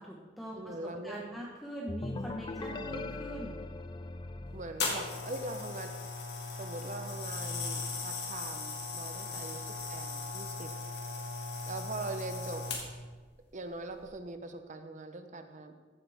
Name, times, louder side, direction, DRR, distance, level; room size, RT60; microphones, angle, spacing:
voice 1, 0.0-3.7 9.2-9.4, equal, ahead, -4 dB, 1.1 m, -43 dB
voice 2, 0.5-1.4 2.7-2.9 4.5-5.9 6.6-10.7 11.7-12.6 13.5-15.7, right 2 dB, 40° right, 8 dB, 0.8 m, -42 dB
sound 1, 1.9-5.6, left 2 dB, 25° left, 0.4 m, -40 dB
sound 2, 4.8-13.1 13.9-14.1, left 3 dB, 60° left, 2.1 m, -38 dB
15.0 x 8.3 x 3.5 m, 1.4 s
head